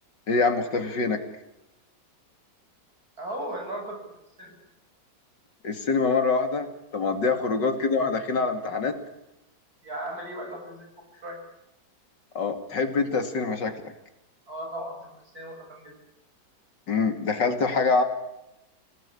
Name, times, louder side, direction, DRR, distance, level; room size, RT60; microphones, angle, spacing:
voice 1, 0.3-1.2 5.6-6.7 6.9-8.9 12.3-13.9 16.9-18.0, left 4 dB, 75° left, 7 dB, 3.1 m, -25 dB
voice 2, 3.2-4.0 4.4-4.5 7.3-7.6 9.8-11.4 14.5-15.9, right 1 dB, 55° right, 2 dB, 7.6 m, -37 dB
27.0 x 18.5 x 8.6 m, 0.91 s
omnidirectional pair, 1.9 m